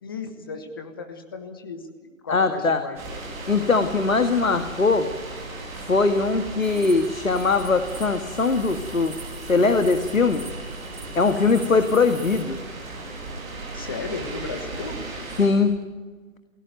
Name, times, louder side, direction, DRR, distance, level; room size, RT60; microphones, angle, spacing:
voice 1, 0.0-1.9 2.2-3.2 11.4-11.6 13.7-15.0, left 4 dB, 15° left, 6 dB, 1.3 m, -35 dB
voice 2, 2.3-2.8 3.5-5.1 5.8-9.2 9.5-10.4 11.1-12.6 15.4-15.8, left 4 dB, 75° left, 8 dB, 1.9 m, -21 dB
sound 1, 3.0-15.5, right 2 dB, 5° right, 1.9 m, -36 dB
sound 2, 6.6-12.4, right 4 dB, 50° right, 4.3 m, -45 dB
29.5 x 17.0 x 9.2 m, 1.4 s
figure-of-eight pair, 160°, 40 cm